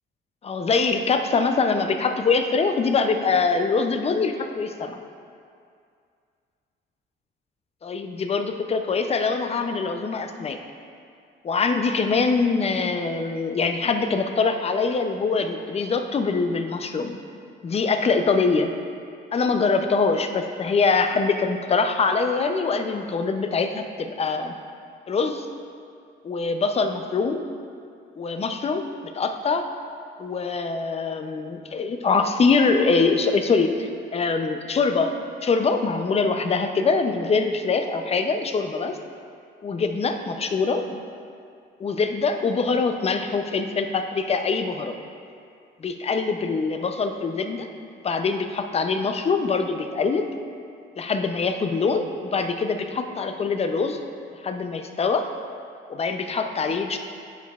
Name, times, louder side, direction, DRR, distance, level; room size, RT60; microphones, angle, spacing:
voice 1, 0.4-5.0 7.8-10.6 11.4-17.2 17.6-18.7 19.3-24.5 25.1-25.5 26.2-27.4 28.2-28.9 29.1-29.7 30.2-35.1 35.4-39.0 39.6-41.0 41.8-45.0 45.8-47.7 48.0-50.3 51.0-54.0 54.4-55.3 55.9-57.0, left 4 dB, 30° left, 7 dB, 0.4 m, -23 dB
9.2 x 4.6 x 2.3 m, 2.3 s
cardioid pair, 90°, 20 cm